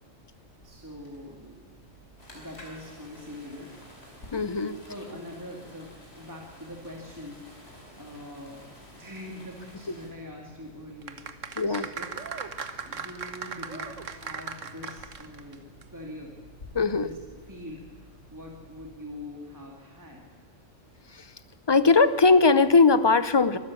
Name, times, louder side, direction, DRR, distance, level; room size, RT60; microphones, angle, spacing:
sound 1, 0.6-18.8, equal, 75° left, 5.1 m, -54 dB
voice 1, 0.6-1.7 2.3-3.8 4.9-12.1 12.8-17.2 17.5-20.2, left 1 dB, 15° right, 0 dB, 2.3 m, -43 dB
sound 2, 2.2-10.1, equal, 55° left, 5.0 m, -52 dB
voice 2, 4.3-4.8 11.6-11.9 16.7-17.1 21.1-21.3 21.7-23.6, left 4 dB, 25° left, 14 dB, 0.6 m, -20 dB
sound 3, 11.0-15.5 15.8-15.9, right 6 dB, 75° right, 1.5 m, -37 dB
24.5 x 12.5 x 8.5 m, 1.5 s
omnidirectional pair, 1.3 m